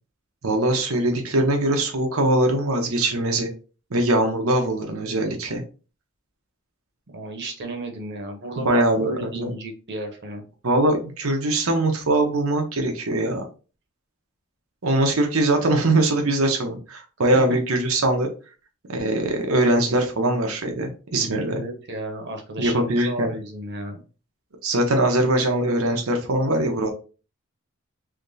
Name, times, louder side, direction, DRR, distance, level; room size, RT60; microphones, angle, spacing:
voice 1, 0.4-3.5 3.9-5.6 8.6-9.5 10.6-13.4 14.8-18.3 18.9-21.6 22.6-23.3 24.6-26.9, right 1 dB, 90° right, 3 dB, 0.9 m, -22 dB
voice 2, 7.1-10.4 21.5-24.0, right 1 dB, 55° right, 4 dB, 1.0 m, -33 dB
3.5 x 2.9 x 2.7 m, 0.35 s
head